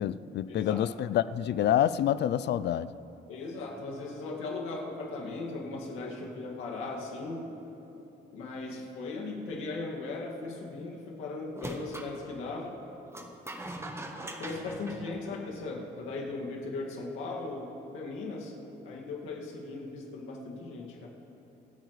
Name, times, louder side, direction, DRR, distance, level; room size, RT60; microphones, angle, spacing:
voice 1, 0.0-2.9, left 11 dB, 60° left, 16 dB, 0.4 m, -27 dB
voice 2, 3.3-7.5 8.3-12.8 14.4-18.5 18.9-21.1, left 3 dB, 90° left, -2 dB, 2.1 m, -38 dB
sound 1, 11.5-12.1 13.1-15.8, right 1 dB, 15° right, 1.2 m, -41 dB
26.0 x 9.0 x 3.2 m, 3.0 s
cardioid pair, 90°, 20 cm